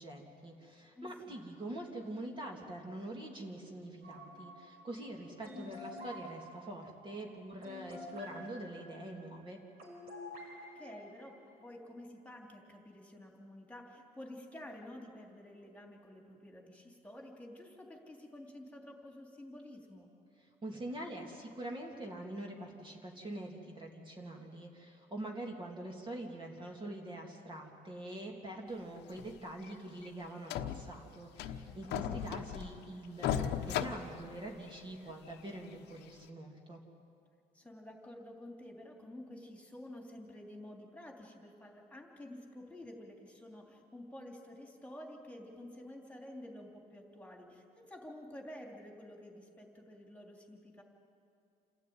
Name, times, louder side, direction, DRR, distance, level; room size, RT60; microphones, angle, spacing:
voice 1, 0.0-9.6 20.4-36.8, right 1 dB, 30° right, 0 dB, 2.7 m, -44 dB
voice 2, 0.9-1.4 5.5-5.9 10.7-20.1 31.6-32.2 37.5-50.8, left 1 dB, 10° left, 1 dB, 3.1 m, -50 dB
sound 1, 4.0-11.8, left 1 dB, 65° right, 5.3 m, -50 dB
sound 2, 29.1-29.3 29.6-29.7 30.0-30.1 30.5-31.0 31.4-32.8 33.2-34.8 35.3-35.4 36.0-36.1, left 9 dB, 85° left, 1.0 m, -36 dB
28.0 x 13.0 x 9.5 m, 2.5 s
cardioid pair, 110°, 17 cm